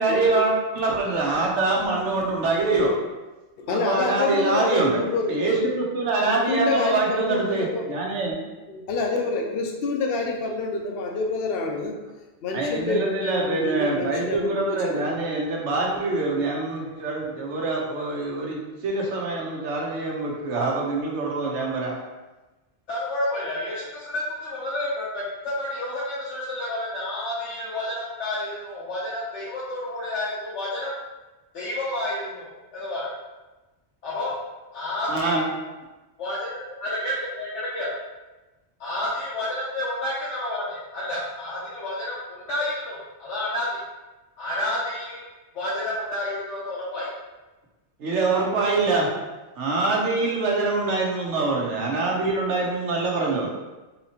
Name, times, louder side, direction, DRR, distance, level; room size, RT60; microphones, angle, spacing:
voice 1, 0.0-3.0 3.7-5.0 5.3-8.4 12.5-22.0 35.1-35.4 48.0-49.1 49.6-53.5, right 3 dB, 80° right, -1 dB, 1.1 m, -24 dB
voice 2, 1.8-2.2 3.6-5.5 6.2-7.9 8.7-11.9 12.4-15.0 16.7-17.0, left 3 dB, 65° left, 2 dB, 0.8 m, -27 dB
voice 3, 22.9-30.9 31.5-33.1 34.0-34.4 34.7-35.4 36.2-38.0 38.8-43.8 44.4-45.2 45.5-47.1, left 1 dB, 80° left, -8 dB, 1.1 m, -30 dB
4.0 x 2.9 x 2.8 m, 1.1 s
omnidirectional pair, 1.2 m